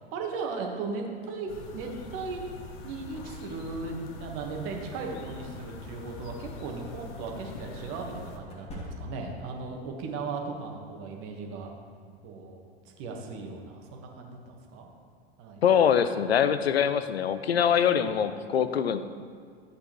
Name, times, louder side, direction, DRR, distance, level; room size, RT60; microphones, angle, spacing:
voice 1, 0.0-2.5 2.8-11.7 12.2-12.6 13.0-14.9 15.4-15.6 16.8-17.0, right 4 dB, 40° right, 2 dB, 1.5 m, -37 dB
sound 1, 1.5-8.4, left 3 dB, 45° left, 1.1 m, -44 dB
sound 2, 6.2-6.4 8.4-9.5, left 1 dB, 20° left, 1.9 m, -42 dB
voice 2, 15.6-19.0, left 8 dB, 70° left, 12 dB, 0.6 m, -23 dB
12.0 x 8.4 x 3.1 m, 2.2 s
figure-of-eight pair, 85°, 32 cm